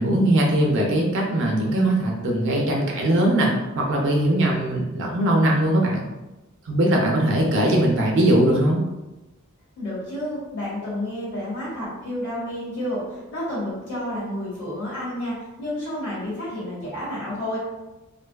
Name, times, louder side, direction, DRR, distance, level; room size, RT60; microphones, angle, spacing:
voice 1, 0.0-6.0 6.7-8.8, right 1 dB, 60° right, 0 dB, 0.4 m, -20 dB
voice 2, 9.7-17.6, left 1 dB, 60° left, -10 dB, 1.2 m, -30 dB
2.5 x 2.3 x 2.2 m, 1.1 s
head